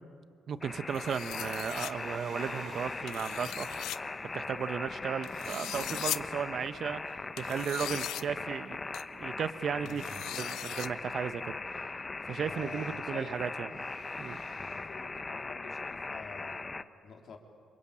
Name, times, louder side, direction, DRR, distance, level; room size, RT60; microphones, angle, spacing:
voice 1, 0.5-11.9 12.3-13.7 14.2-14.4, right 7 dB, 55° right, 12 dB, 1.0 m, -36 dB
sound 1, 0.6-16.8, left 3 dB, 25° left, 0.9 m, -40 dB
sound 2, 0.9-1.9 3.1-4.0 5.2-6.2 7.4-8.2 8.9-9.0 9.9-10.9, left 13 dB, 85° left, 0.6 m, -39 dB
sound 3, 1.7-3.2 4.9-6.3 12.2-13.0 13.7-14.8, right 3 dB, 80° right, 6.4 m, -50 dB
voice 2, 9.8-10.2 12.4-13.4 14.5-17.4, left 5 dB, 60° left, 2 dB, 3.4 m, -48 dB
27.0 x 23.5 x 8.8 m, 2.4 s
cardioid pair, 90°, 0 cm